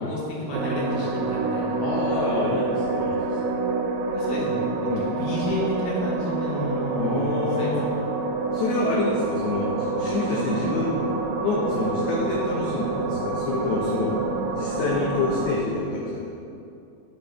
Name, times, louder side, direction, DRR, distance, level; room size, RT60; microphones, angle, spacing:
voice 1, 0.0-1.8 4.1-4.6 5.1-7.2 7.6-7.7 10.5-10.7 14.8-14.9, left 1 dB, 50° left, -6 dB, 1.9 m, -31 dB
sound 1, 0.5-15.6, right 3 dB, 80° right, 2.2 m, -27 dB
voice 2, 1.8-3.4 4.9-5.1 6.9-7.9 8.5-11.0 11.4-14.1 14.5-16.3, left 3 dB, 75° left, -4 dB, 1.9 m, -27 dB
11.0 x 3.9 x 3.4 m, 2.6 s
omnidirectional pair, 4.2 m